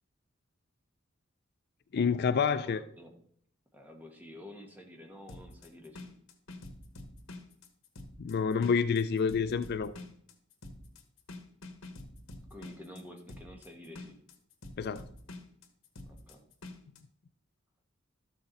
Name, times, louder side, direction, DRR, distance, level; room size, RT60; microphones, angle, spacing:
voice 1, 1.9-2.8 8.2-9.9 14.8-15.0, left 6 dB, 50° left, 0.4 m, -28 dB
voice 2, 2.5-3.1 3.7-6.1 12.5-14.2 16.1-16.4, left 1 dB, 10° right, 1.4 m, -49 dB
sound 1, 5.3-17.0, left 2 dB, 80° left, 1.4 m, -47 dB
13.0 x 6.6 x 4.1 m
head